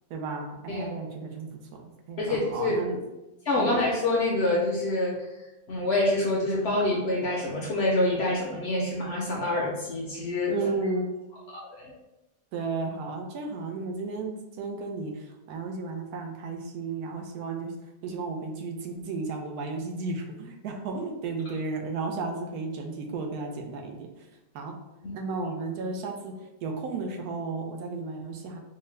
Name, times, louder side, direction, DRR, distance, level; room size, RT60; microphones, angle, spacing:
voice 1, 0.1-3.0 3.5-3.7 10.5-11.0 12.5-17.7 18.0-24.1 24.5-24.7 25.1-26.3 26.6-28.6, right 3 dB, 85° right, 2 dB, 1.1 m, -33 dB
voice 2, 0.7-1.0 2.2-2.8 3.5-5.2 5.7-10.6 11.5-11.9 25.0-25.1, left 2 dB, 60° left, -2 dB, 0.7 m, -26 dB
3.7 x 2.1 x 3.2 m, 1.0 s
omnidirectional pair, 1.6 m